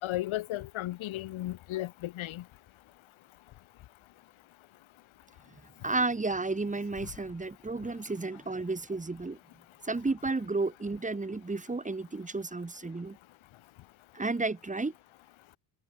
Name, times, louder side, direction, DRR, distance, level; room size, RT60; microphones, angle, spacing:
voice 1, 0.0-2.4, left 15 dB, 80° left, 3.9 m, -34 dB
voice 2, 5.8-9.4 9.8-13.2 14.1-14.9, right 3 dB, 15° right, 3.2 m, -32 dB
cardioid pair, 125°, 47 cm